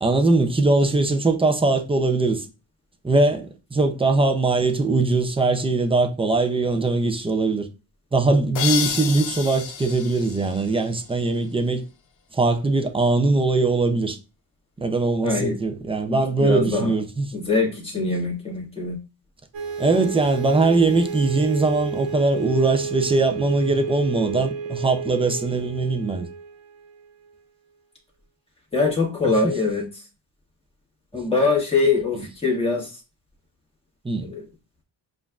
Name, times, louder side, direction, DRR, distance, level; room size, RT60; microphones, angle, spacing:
voice 1, 0.0-2.5 3.0-7.7 8.1-11.8 12.3-14.2 14.8-17.3 19.8-26.3 34.0-34.3, right 3 dB, 15° right, 0.4 m, -21 dB
sound 1, 8.5-11.3, left 8 dB, 80° left, 0.6 m, -30 dB
voice 2, 15.2-15.6 16.0-16.9 17.3-19.0 28.7-29.8 31.1-32.9 34.2-34.5, left 3 dB, 15° left, 1.4 m, -23 dB
sound 2, 19.5-27.3, right 6 dB, 85° right, 1.2 m, -31 dB
7.2 x 2.5 x 2.3 m
wide cardioid pair, 155°, 44 cm